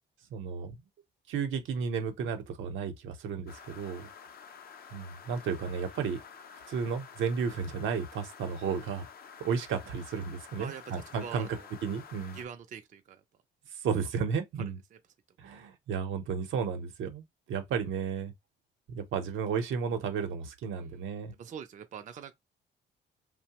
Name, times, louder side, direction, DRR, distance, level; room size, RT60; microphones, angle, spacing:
voice 1, 0.3-0.8 1.3-4.1 4.9-6.2 6.7-9.1 9.4-11.5 11.8-12.4 13.8-14.8 15.4-18.3 18.9-21.3, right 6 dB, 75° right, 0.7 m, -33 dB
sound 1, 3.5-12.5, left 6 dB, 50° left, 0.5 m, -50 dB
voice 2, 10.5-10.9 11.2-11.7 12.3-13.2 14.6-15.0 20.8-21.0 21.3-22.3, right 8 dB, 40° right, 0.4 m, -44 dB
2.7 x 2.0 x 2.8 m
cardioid pair, 90°, 20 cm